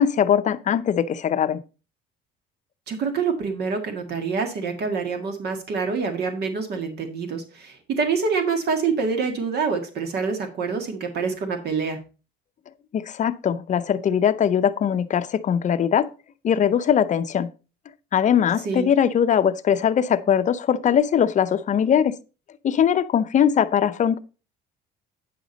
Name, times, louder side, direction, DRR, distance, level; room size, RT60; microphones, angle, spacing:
voice 1, 0.0-1.6 12.9-16.1 16.4-17.5 18.1-22.2 22.6-24.2, left 8 dB, 40° left, 0.6 m, -21 dB
voice 2, 2.9-12.0 18.7-18.9, right 5 dB, 60° right, 1.8 m, -26 dB
9.3 x 6.2 x 4.0 m
cardioid pair, 110°, 19 cm